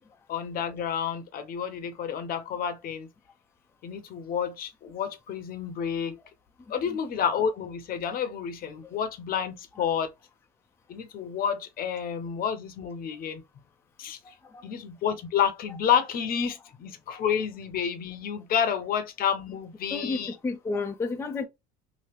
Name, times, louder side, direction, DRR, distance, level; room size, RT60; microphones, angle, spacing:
voice 1, 0.3-3.1 3.8-6.2 6.7-10.1 10.9-13.7 14.0-14.3 14.6-20.3, left 8 dB, 50° left, 0.7 m, -30 dB
voice 2, 19.9-21.4, left 3 dB, 10° left, 0.4 m, -32 dB
2.9 x 2.7 x 3.0 m
supercardioid pair, 90°, 20 cm